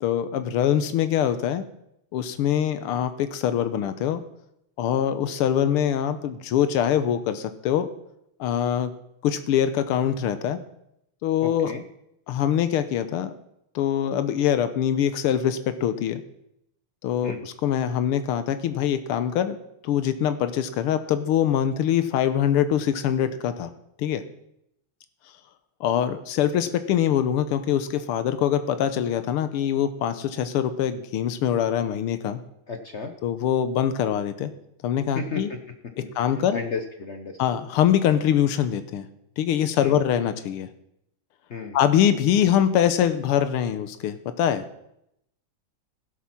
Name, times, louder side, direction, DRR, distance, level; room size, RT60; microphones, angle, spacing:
voice 1, 0.0-1.6 2.1-4.2 4.8-7.9 8.4-8.9 9.2-10.6 11.2-11.7 12.3-13.3 13.8-16.2 17.0-19.6 19.8-23.7 24.0-24.2 25.8-32.4 33.2-34.5 34.8-35.5 36.2-36.6 37.4-39.1 39.4-40.7 41.7-44.6, left 9 dB, 90° left, 10 dB, 1.7 m, -23 dB
voice 2, 11.4-11.8 17.2-17.5 32.7-33.1 35.1-35.6 36.0-36.1 36.5-37.6 39.8-40.0 41.5-41.8, left 5 dB, 70° left, 6 dB, 0.6 m, -33 dB
15.5 x 8.4 x 5.9 m, 0.79 s
omnidirectional pair, 2.4 m